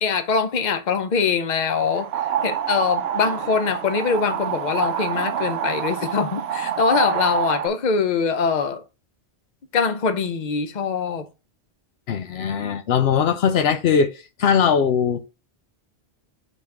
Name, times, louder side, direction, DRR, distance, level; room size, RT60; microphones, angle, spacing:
voice 1, 0.0-8.8 9.7-11.3, left 5 dB, 45° left, 0.8 m, -23 dB
sound 1, 1.8-7.7, right 9 dB, 75° right, 0.9 m, -27 dB
voice 2, 12.1-15.3, left 7 dB, 75° left, 0.8 m, -20 dB
5.0 x 4.1 x 5.9 m
omnidirectional pair, 1.1 m